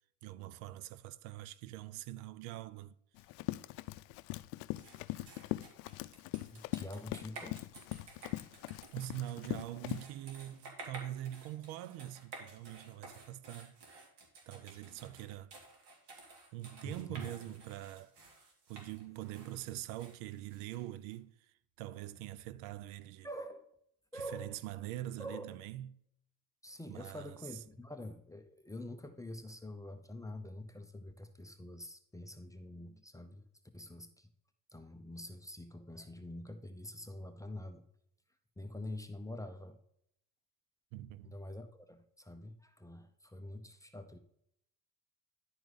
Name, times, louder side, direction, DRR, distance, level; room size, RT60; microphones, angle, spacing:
voice 1, 0.2-3.0 8.9-13.8 14.5-15.5 16.5-18.1 18.7-23.3 24.1-25.9 26.9-27.4 40.9-41.4, right 13 dB, 75° right, 0.6 m, -44 dB
Run, 3.2-10.0, left 19 dB, 80° left, 0.5 m, -41 dB
sound 1, 4.8-21.1, right 3 dB, 55° right, 2.7 m, -53 dB
voice 2, 6.5-7.6 16.8-17.0 23.2-23.7 24.1-24.6 25.2-25.5 26.6-33.5 33.7-34.3 34.7-37.8 38.6-39.8 41.2-44.2, left 1 dB, 5° left, 0.5 m, -46 dB
10.5 x 4.6 x 3.9 m
supercardioid pair, 105°, 49 cm